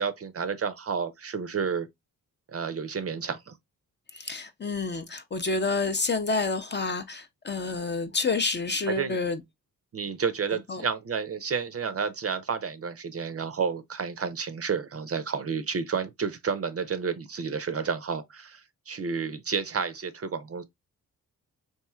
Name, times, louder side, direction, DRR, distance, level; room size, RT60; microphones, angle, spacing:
voice 1, 0.0-1.9 2.5-3.5 8.9-9.2 9.9-20.6, right 6 dB, 35° right, 0.5 m, -31 dB
voice 2, 4.1-9.4 10.7-10.8, left 3 dB, 30° left, 0.5 m, -29 dB
3.0 x 2.6 x 2.3 m
supercardioid pair, 50°, 40 cm